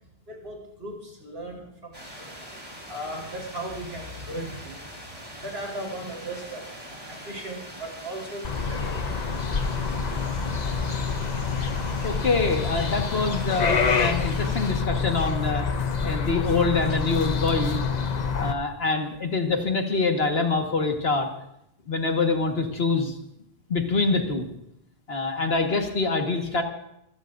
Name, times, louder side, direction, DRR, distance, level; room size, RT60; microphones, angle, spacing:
voice 1, 0.3-2.3 2.7-5.0 5.3-9.0, right 1 dB, 70° right, -1 dB, 4.5 m, -37 dB
sound 1, 1.9-14.7, equal, 35° right, 4.3 m, -42 dB
sound 2, 8.4-18.5, left 5 dB, 45° left, 0.8 m, -27 dB
voice 2, 12.0-17.8 18.4-21.3 21.9-23.1 23.7-24.5 25.1-26.6, left 3 dB, 70° left, 3 dB, 1.9 m, -25 dB
26.0 x 16.0 x 2.7 m, 0.78 s
omnidirectional pair, 1.1 m